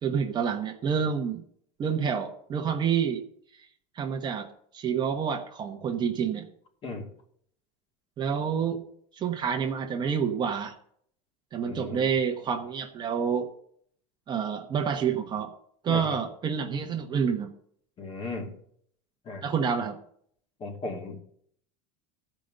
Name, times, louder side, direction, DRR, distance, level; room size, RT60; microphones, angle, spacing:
voice 1, 0.0-1.4 1.8-3.2 4.0-4.5 4.7-6.5 8.2-8.8 9.1-10.7 11.5-13.5 14.3-15.5 15.8-17.5 19.4-20.0, right 7 dB, 30° right, 4 dB, 1.0 m, -28 dB
voice 2, 11.7-12.1 15.9-16.2 18.0-18.5 19.3-19.4 20.6-21.2, left 3 dB, 35° left, 2 dB, 2.4 m, -36 dB
14.5 x 5.2 x 6.7 m, 0.65 s
supercardioid pair, 140°, 16 cm